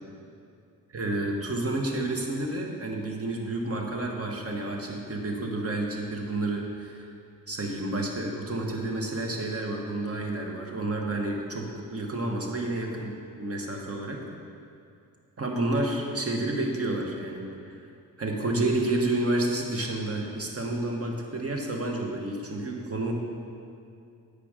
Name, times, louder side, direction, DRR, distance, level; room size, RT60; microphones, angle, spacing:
voice 1, 0.9-7.0 7.5-13.1 13.4-14.2 15.4-17.5 18.2-23.1, right 2 dB, 40° right, 1 dB, 1.3 m, -30 dB
8.5 x 5.1 x 5.0 m, 2.4 s
cardioid pair, 70°, 36 cm